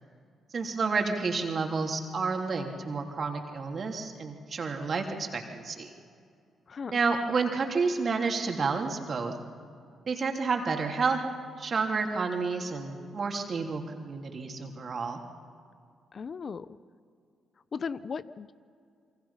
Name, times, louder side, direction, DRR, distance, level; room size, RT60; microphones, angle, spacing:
voice 1, 0.5-5.9 6.9-9.3 10.1-11.2 11.6-15.2, right 4 dB, 50° right, 3 dB, 3.1 m, -30 dB
voice 2, 6.7-7.0 16.1-16.7 17.7-18.5, left 5 dB, 50° left, 15 dB, 0.8 m, -36 dB
28.0 x 24.0 x 5.8 m, 2.3 s
hypercardioid pair, 45°, 0 cm